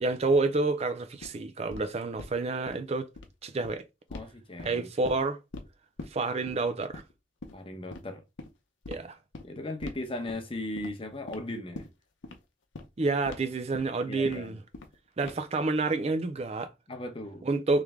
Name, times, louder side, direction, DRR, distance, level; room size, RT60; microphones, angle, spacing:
voice 1, 0.0-3.1 3.4-3.8 4.6-5.4 6.1-7.0 8.9-9.2 13.0-14.6 15.2-16.7 17.4-17.8, right 3 dB, 35° right, 0.4 m, -28 dB
sound 1, 1.2-1.3 1.7-1.8 2.2-2.3 2.7-2.8 3.1-3.3 3.6-3.7 4.1-4.3 4.6-5.2 5.5-5.7 6.0-6.1 6.5-6.6 6.9-7.1 7.4-7.5 7.9-8.0 8.4-8.5 8.8-9.0 9.3-9.5 9.8-10.0 10.3-10.5 10.8-10.9 11.3-11.4 11.7-11.9 12.2-12.4 12.7-12.9 13.3-13.4 13.7-13.9 14.3-14.4 14.7-15.0 15.2-15.5, left 2 dB, 80° left, 0.8 m, -41 dB
voice 2, 4.1-4.9 7.5-8.2 9.4-11.9 14.1-14.6 16.9-17.4, left 1 dB, 30° left, 0.8 m, -37 dB
3.4 x 3.2 x 3.5 m
head